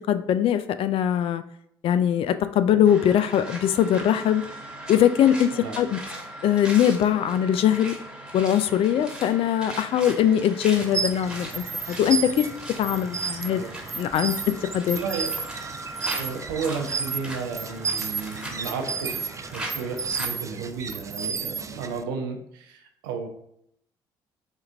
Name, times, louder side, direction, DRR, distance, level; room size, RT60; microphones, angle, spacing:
voice 1, 0.1-1.4 1.8-4.4 4.9-6.0 6.4-7.9 8.3-12.5 12.8-13.6 14.0-14.3 14.7-15.0, left 10 dB, 55° left, 12 dB, 0.3 m, -21 dB
sound 1, 2.8-20.3, right 1 dB, 5° right, 1.3 m, -39 dB
sound 2, 10.8-22.0, right 5 dB, 30° right, 0.4 m, -32 dB
voice 2, 13.4-13.7 14.9-15.4 16.1-23.3, right 5 dB, 85° right, 3 dB, 0.5 m, -33 dB
4.5 x 2.4 x 3.3 m, 0.74 s
hypercardioid pair, 55°, 11 cm